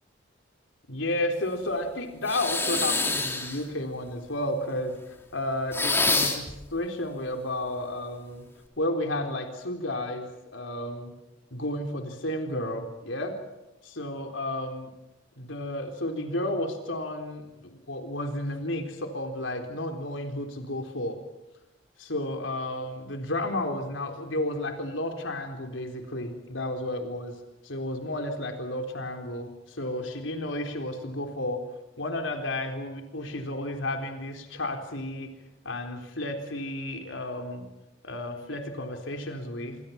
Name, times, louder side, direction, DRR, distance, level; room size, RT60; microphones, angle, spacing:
voice 1, 0.9-8.5 8.8-11.1 11.5-13.4 13.8-14.9 15.4-21.2 22.0-27.4 27.6-31.6 32.0-35.3 35.6-37.7 38.0-39.8, left 1 dB, 80° left, 5 dB, 3.9 m, -32 dB
sound 1, 2.2-3.6 5.7-6.5, left 3 dB, 10° left, 3.5 m, -26 dB
27.5 x 26.5 x 5.9 m, 0.95 s
head